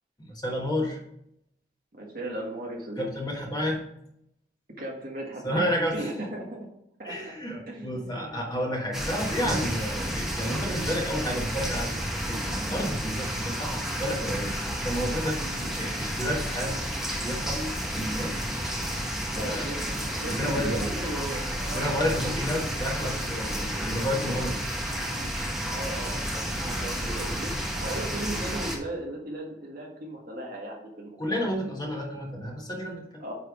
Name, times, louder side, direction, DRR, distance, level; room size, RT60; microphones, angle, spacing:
voice 1, 0.2-1.0 3.0-3.8 5.4-6.1 7.0-11.9 12.3-14.6 14.8-16.8 17.2-18.7 19.3-19.8 20.2-20.8 21.7-24.6 31.2-33.0, equal, 20° left, -1 dB, 1.3 m, -31 dB
voice 2, 1.9-3.1 4.8-6.7 7.0-7.3 7.7-8.4 19.3-22.7 25.7-31.5 33.2-33.3, right 1 dB, 50° right, -1 dB, 1.6 m, -37 dB
sound 1, 8.9-28.8, equal, ahead, 1.0 m, -31 dB
9.3 x 3.4 x 4.9 m, 0.77 s
head